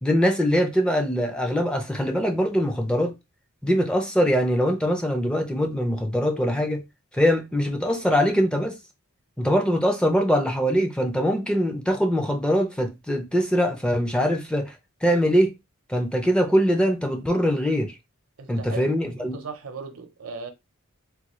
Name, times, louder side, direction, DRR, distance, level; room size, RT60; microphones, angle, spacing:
voice 1, 0.0-3.1 3.6-6.8 7.1-8.8 9.4-14.7 15.0-15.5 15.9-17.9 18.5-19.4, equal, 5° left, 0.5 m, -22 dB
voice 2, 18.4-20.5, right 4 dB, 70° right, 0.7 m, -37 dB
3.6 x 2.3 x 3.0 m
head